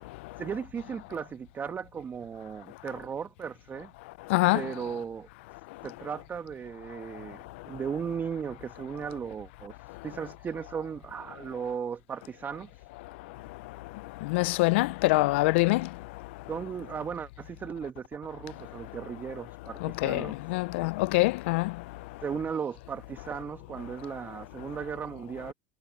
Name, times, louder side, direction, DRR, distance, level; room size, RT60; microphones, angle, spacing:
voice 1, 0.4-3.9 4.5-5.3 5.8-7.4 7.7-9.7 10.0-12.7 16.5-20.4 22.2-25.5, right 7 dB, 30° right, 1.4 m, -36 dB
voice 2, 4.3-4.6 14.2-15.9 19.8-21.7, left 22 dB, 75° left, 0.5 m, -25 dB
supercardioid pair, 105°, 6 cm